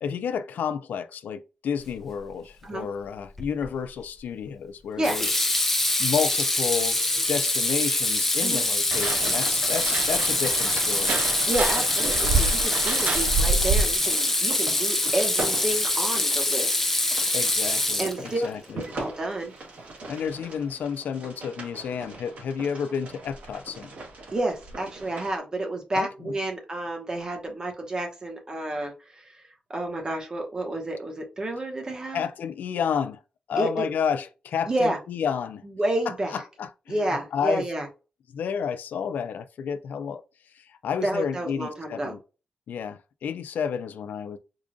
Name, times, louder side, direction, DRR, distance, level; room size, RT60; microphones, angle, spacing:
voice 1, 0.0-5.3 6.0-7.0 7.3-11.2 17.3-18.8 20.1-23.9 25.9-26.3 32.1-33.2 33.5-35.6 36.3-37.7 38.3-40.2 40.5-42.2 42.7-44.4, left 7 dB, 85° left, 0.4 m, -31 dB
Water tap faucet / Sink (filling or washing), 3.4-3.7 5.0-18.5, left 2 dB, 10° left, 0.6 m, -24 dB
sound 1, 8.9-14.1, right 4 dB, 55° right, 0.3 m, -28 dB
sound 2, 9.2-25.4, right 3 dB, 75° right, 1.4 m, -41 dB
voice 2, 11.5-16.7 18.0-19.5 24.3-29.4 29.7-32.2 33.6-33.9 34.7-35.0 35.6-36.4 36.9-37.9 41.0-42.1, right 1 dB, 25° right, 0.9 m, -30 dB
4.8 x 2.3 x 2.5 m
wide cardioid pair, 170°, 3 cm